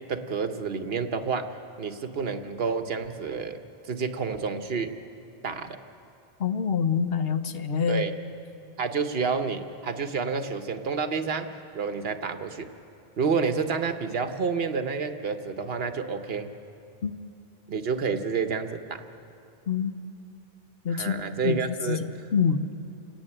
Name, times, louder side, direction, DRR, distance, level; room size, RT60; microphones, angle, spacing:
voice 1, 0.0-1.5 1.8-4.9 5.4-5.8 7.9-8.1 8.8-11.5 11.7-12.7 13.2-16.5 17.7-19.0 20.9-22.0, right 5 dB, 70° right, 8 dB, 1.3 m, -29 dB
voice 2, 6.4-8.1 17.0-17.1 19.7-19.9 20.8-21.6 21.9-22.0 22.3-22.6, left 6 dB, 70° left, 9 dB, 1.1 m, -26 dB
28.5 x 10.5 x 8.9 m, 2.6 s
omnidirectional pair, 1.0 m